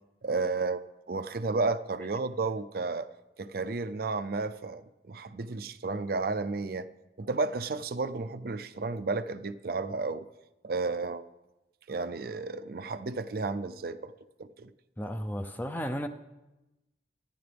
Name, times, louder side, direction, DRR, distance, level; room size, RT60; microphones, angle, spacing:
voice 1, 0.2-0.8 1.1-3.1 3.4-6.9 7.2-10.3 10.6-11.2 11.9-14.1 14.4-14.7, right 3 dB, 55° right, 0.5 m, -32 dB
voice 2, 15.0-16.1, equal, 10° left, 0.6 m, -34 dB
25.0 x 10.0 x 3.5 m
head